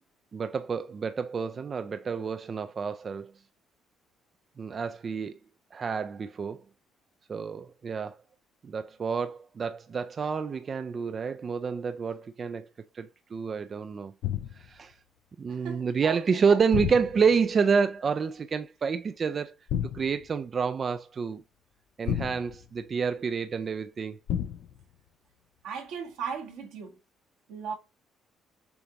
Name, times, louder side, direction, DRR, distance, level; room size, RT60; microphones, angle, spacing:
voice 1, 0.3-3.3 4.6-5.3 5.7-6.6 7.3-8.2 8.6-12.7 12.9-14.1 14.5-14.9 15.4-19.5 19.9-21.4 22.0-24.2, right 5 dB, 45° right, 0.4 m, -28 dB
sound 1, 14.2-14.8 16.7-17.5 19.7-20.3 22.1-22.9 24.3-24.8, left 10 dB, 75° left, 0.5 m, -32 dB
voice 2, 15.5-16.6 25.6-26.9 27.5-27.7, right 6 dB, 85° right, 1.5 m, -37 dB
6.9 x 2.6 x 2.9 m
supercardioid pair, 75°, 0 cm